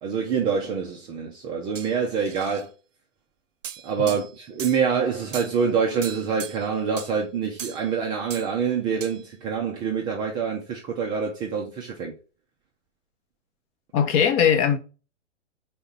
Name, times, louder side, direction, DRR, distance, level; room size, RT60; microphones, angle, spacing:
voice 1, 0.0-2.7 3.8-12.1, right 6 dB, 10° right, 0.4 m, -26 dB
sound 1, 1.7-2.6 3.6-4.9 5.3-5.6 6.0-6.7 7.0-7.1 7.6-7.9 8.3-8.5 9.0-9.2, right 8 dB, 75° right, 0.7 m, -38 dB
voice 2, 13.9-14.8, left 8 dB, 30° left, 0.7 m, -20 dB
4.4 x 4.2 x 5.2 m
figure-of-eight pair, 115°, 38 cm